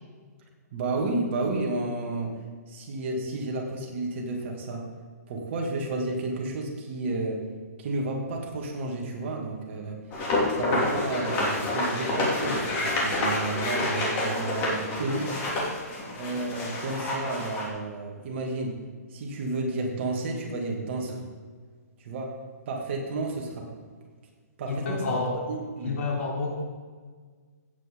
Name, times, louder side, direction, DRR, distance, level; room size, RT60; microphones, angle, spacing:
voice 1, 0.7-2.3 2.7-4.9 5.3-7.4 7.8-10.0 10.5-15.3 16.2-18.8 19.1-21.3 22.0-22.3 22.7-23.7 24.6-25.2 25.5-26.0, right 2 dB, 45° right, 0 dB, 2.3 m, -31 dB
sound 1, 10.1-17.6, left 2 dB, 25° left, 2.9 m, -28 dB
voice 2, 24.7-25.4 25.8-26.5, left 4 dB, 50° left, -1 dB, 3.4 m, -29 dB
16.5 x 8.6 x 3.8 m, 1.5 s
hypercardioid pair, 160°, 9 cm